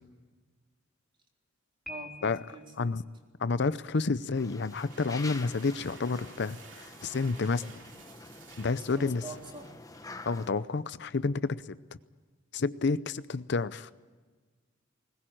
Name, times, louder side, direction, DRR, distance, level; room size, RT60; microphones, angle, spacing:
Piano, 1.8-2.8, left 2 dB, ahead, 4.3 m, -45 dB
voice 1, 1.9-2.9 8.5-9.8, right 3 dB, 25° right, 1 dB, 3.6 m, -45 dB
voice 2, 3.4-7.6 8.6-9.2 10.3-11.8 12.5-13.9, left 4 dB, 60° left, 15 dB, 0.6 m, -30 dB
sound 1, 4.3-10.5, left 3 dB, 20° left, 1.2 m, -47 dB
sound 2, 4.5-10.1, right 5 dB, 75° right, 2.6 m, -53 dB
21.0 x 19.5 x 9.0 m, 1.4 s
head